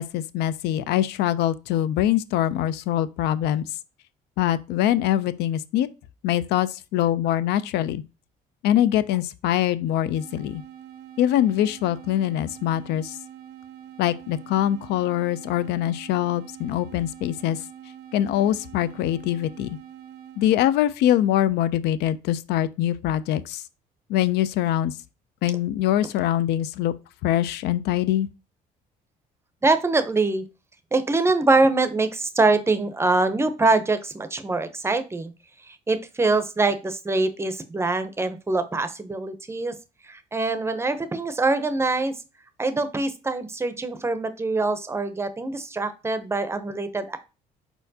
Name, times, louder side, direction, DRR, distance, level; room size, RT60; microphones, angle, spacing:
voice 1, 0.0-3.7 4.4-5.9 6.2-8.0 8.6-10.6 11.2-13.2 14.0-17.6 18.1-19.8 20.4-23.6 24.1-24.9 25.4-26.9 27.2-28.3, left 12 dB, 80° left, 0.4 m, -23 dB
sound 1, 10.1-20.5, right 10 dB, 75° right, 0.6 m, -44 dB
voice 2, 29.6-30.4 30.9-35.3 35.7-39.8 40.1-42.1 42.6-47.2, right 3 dB, 15° right, 0.5 m, -24 dB
4.5 x 4.4 x 2.7 m
cardioid pair, 110°, 17 cm